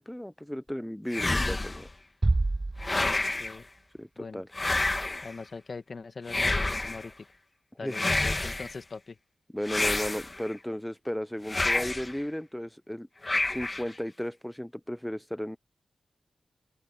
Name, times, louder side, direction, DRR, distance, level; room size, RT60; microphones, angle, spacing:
voice 1, 0.0-1.9 4.0-4.5 7.8-8.1 9.5-13.1 13.4-15.6, equal, 5° left, 0.9 m, -35 dB
sound 1, 1.1-1.9 2.8-3.6 4.5-5.3 6.3-7.1 7.9-8.7 9.7-10.5 11.5-12.1 13.2-13.9, left 2 dB, 30° left, 2.0 m, -29 dB
Bass drum, 2.2-3.6, right 2 dB, 30° right, 0.5 m, -28 dB
voice 2, 3.0-3.7 4.2-4.4 5.2-7.1 7.8-9.2, left 4 dB, 55° left, 2.1 m, -42 dB
open air
supercardioid pair, 45°, 0 cm